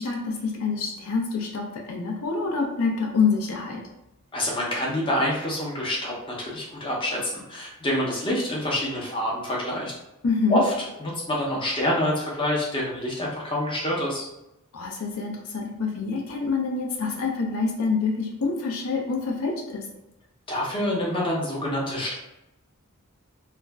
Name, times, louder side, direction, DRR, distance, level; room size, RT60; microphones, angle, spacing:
voice 1, 0.0-3.8 10.2-10.6 14.7-19.8, left 4 dB, 75° left, 0 dB, 0.5 m, -26 dB
voice 2, 4.3-9.9 10.5-14.2 20.5-22.1, left 1 dB, 25° left, -4 dB, 0.6 m, -27 dB
2.4 x 2.1 x 3.3 m, 0.90 s
head